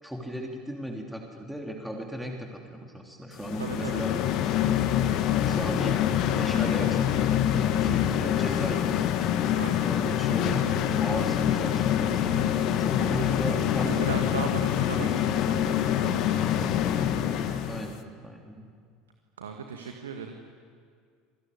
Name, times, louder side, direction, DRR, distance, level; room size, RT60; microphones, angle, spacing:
voice 1, 0.0-4.3 5.3-6.0 6.3-9.0 9.8-10.6 10.9-14.1 17.6-18.7, right 1 dB, ahead, 1 dB, 3.3 m, -36 dB
sound 1, 3.4-17.9, left 10 dB, 50° left, 1.7 m, -25 dB
voice 2, 3.6-4.1 9.5-9.9 13.8-16.8 19.4-20.4, right 6 dB, 75° right, 4 dB, 1.9 m, -37 dB
27.5 x 20.0 x 9.8 m, 2.1 s
figure-of-eight pair, 70°, 0 cm